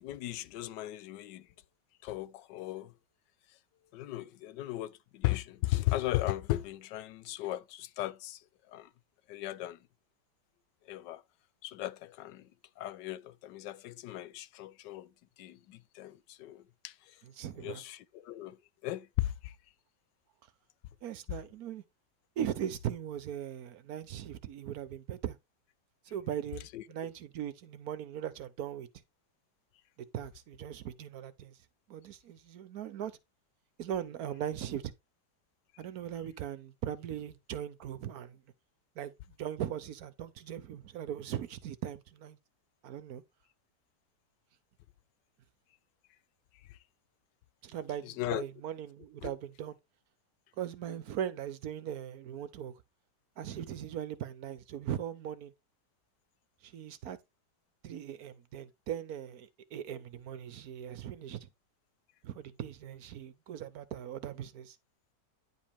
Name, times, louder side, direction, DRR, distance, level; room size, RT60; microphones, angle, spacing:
voice 1, 0.0-1.5 2.0-2.9 3.9-8.4 8.7-8.9 9.3-9.8 10.9-11.2 11.6-12.4 12.8-15.1 15.4-16.9 17.6-18.6 18.8-19.5 26.7-26.8 48.0-48.4 49.2-49.3, left 16 dB, 85° left, 1.3 m, -36 dB
voice 2, 17.2-17.8 21.0-21.8 22.4-25.4 26.0-28.9 30.1-31.6 31.9-33.1 33.8-34.9 35.8-38.4 39.0-39.1 39.4-42.4 42.8-43.2 47.6-49.8 50.6-52.7 53.4-55.5 56.6-57.2 57.8-61.5 62.2-64.8, right 10 dB, 65° right, 1.1 m, -39 dB
10.0 x 5.1 x 3.4 m
omnidirectional pair, 1.8 m